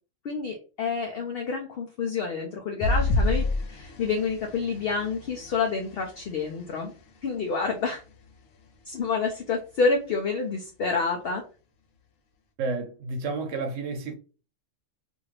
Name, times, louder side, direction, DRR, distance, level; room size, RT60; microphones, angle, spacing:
voice 1, 0.2-6.9 7.2-8.0 8.9-11.4, left 4 dB, 60° left, 0.7 m, -28 dB
sound 1, 2.8-7.5 8.1-8.3 8.7-8.8, left 2 dB, 80° left, 1.0 m, -30 dB
voice 2, 12.6-14.1, right 3 dB, 75° right, 1.0 m, -31 dB
2.6 x 2.5 x 3.2 m
omnidirectional pair, 1.3 m